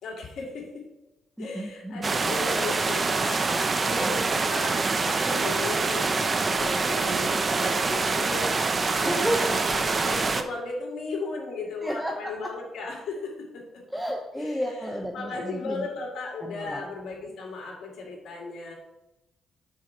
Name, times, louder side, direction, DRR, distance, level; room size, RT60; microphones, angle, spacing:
voice 1, 0.0-0.8 1.4-4.8 5.0-8.7 9.0-13.6 14.4-18.7, left 3 dB, 70° left, -1 dB, 2.7 m, -36 dB
voice 2, 1.4-2.1 3.9-4.1 9.0-9.6 11.8-12.5 13.9-15.9 16.4-16.8, equal, ahead, 1 dB, 0.9 m, -32 dB
sound 1, 2.0-10.4, right 4 dB, 35° right, 0.7 m, -25 dB
6.9 x 4.8 x 5.9 m, 0.99 s
cardioid pair, 90°, 0 cm